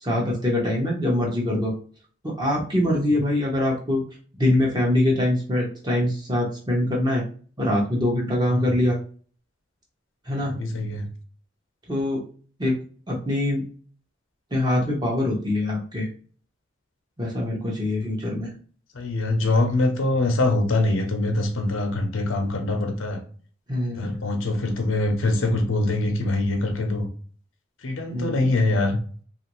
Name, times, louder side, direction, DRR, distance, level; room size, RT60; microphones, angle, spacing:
voice 1, 0.0-1.7 2.2-4.0 4.4-7.2 7.6-9.0 10.3-10.5 11.9-12.2 12.6-12.8 13.1-13.6 14.5-16.1 17.2-18.5 23.7-24.2 28.1-28.5, left 1 dB, 20° right, -3 dB, 0.8 m, -23 dB
voice 2, 10.4-11.1 18.9-23.2 23.9-27.1 27.8-29.0, left 2 dB, 85° left, 5 dB, 0.7 m, -24 dB
3.0 x 2.4 x 2.9 m, 0.42 s
head